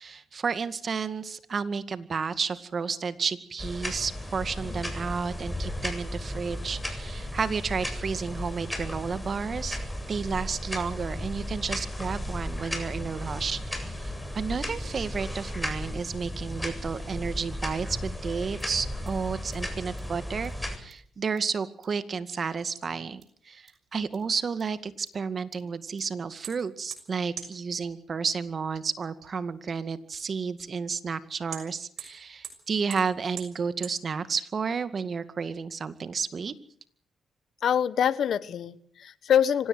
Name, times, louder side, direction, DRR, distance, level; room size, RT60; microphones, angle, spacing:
voice 1, 0.0-9.8 10.1-36.5, right 5 dB, 50° right, 11 dB, 2.1 m, -32 dB
sound 1, 3.6-20.8, left 1 dB, 10° left, 7.8 m, -35 dB
sound 2, 18.6-18.7 19.1-19.2 19.5-19.6 20.0-20.1 20.4-20.5 20.9-21.0 21.4-21.5 21.8-21.9 22.3-22.4 22.7-22.8 23.2-23.3 23.7-23.8 24.1-24.2 24.6-24.7 25.1-25.2 25.5-25.6 26.0-26.1 26.4-26.5 26.9-27.0 27.4-27.5 27.8-27.9 28.3-28.4 28.7-28.8 29.2-29.3 29.7-29.8 30.1-30.2 30.6-30.7 31.1-31.2 31.5-31.6 32.0-32.1 32.4-32.5 32.9-33.0 33.4-33.5 33.8-33.9, right 9 dB, 70° right, 6.5 m, -40 dB
voice 2, 37.6-39.7, left 9 dB, 70° left, 16 dB, 1.3 m, -25 dB
25.5 x 17.5 x 8.1 m, 0.64 s
supercardioid pair, 60°, 0 cm